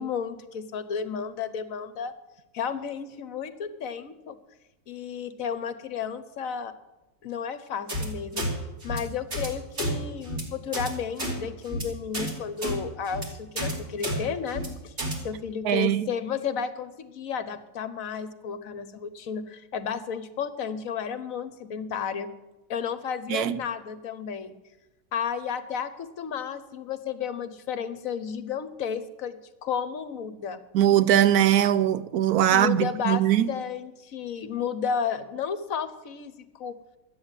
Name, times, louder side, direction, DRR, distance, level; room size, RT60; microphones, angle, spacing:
voice 1, 0.0-2.1 2.5-4.4 4.9-6.7 7.2-8.4 8.8-14.9 15.2-22.3 22.7-24.6 25.1-30.6 32.5-33.2 33.5-36.8, left 7 dB, 65° left, 1.2 m, -32 dB
sound 1, 7.9-8.1 8.4-8.5 8.8-9.0 9.3-9.5 9.7-9.9 10.2-10.4 10.7-10.9 11.2-11.3 11.6-11.8 12.1-12.3 12.6-12.7 13.1-13.3 13.6-13.7 14.0-14.2 14.5-14.7 15.0-15.1, equal, 50° right, 3.2 m, -30 dB
voice 2, 15.6-16.0 23.3-23.6 30.7-33.5, right 11 dB, 80° right, 1.1 m, -21 dB
12.5 x 8.7 x 8.9 m
omnidirectional pair, 1.6 m